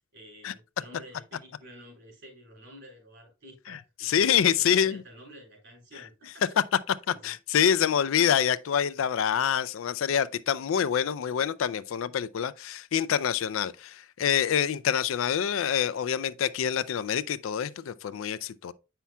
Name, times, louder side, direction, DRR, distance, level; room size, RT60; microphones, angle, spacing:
voice 1, 0.1-6.4 7.1-7.3, equal, 65° right, 3.6 m, -50 dB
voice 2, 3.7-5.0 7.1-18.7, left 8 dB, 75° left, 0.4 m, -26 dB
8.3 x 5.7 x 2.3 m
head